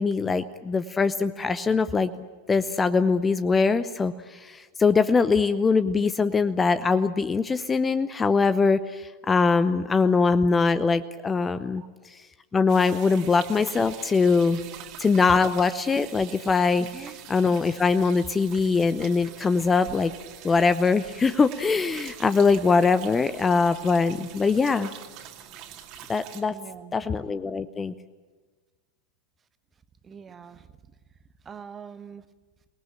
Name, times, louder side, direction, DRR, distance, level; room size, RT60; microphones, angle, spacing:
voice 1, 0.0-2.1 2.5-11.8 12.5-14.6 15.0-20.1 20.4-24.9 26.1-26.6 26.9-27.9, left 4 dB, 15° left, 13 dB, 0.8 m, -22 dB
sound 1, 12.7-26.4, right 10 dB, 40° right, 2.4 m, -44 dB
voice 2, 16.8-17.2 26.5-27.1 30.0-30.7 31.4-32.2, right 6 dB, 20° right, 12 dB, 1.3 m, -44 dB
28.0 x 19.5 x 8.9 m, 1.4 s
figure-of-eight pair, 90°, 0 cm